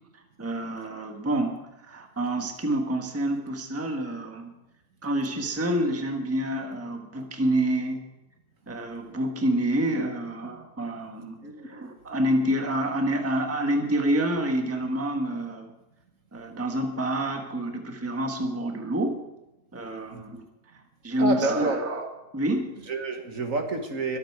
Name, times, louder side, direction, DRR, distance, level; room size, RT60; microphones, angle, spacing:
voice 1, 0.4-4.5 5.0-8.0 8.7-11.4 11.6-15.7 16.3-19.2 19.7-20.5 21.0-22.1 22.3-22.8, right 1 dB, 10° right, 3 dB, 1.2 m, -28 dB
voice 2, 21.2-21.8 22.9-24.2, right 3 dB, 55° right, 4 dB, 1.8 m, -28 dB
22.0 x 8.0 x 4.7 m, 0.97 s
omnidirectional pair, 1.7 m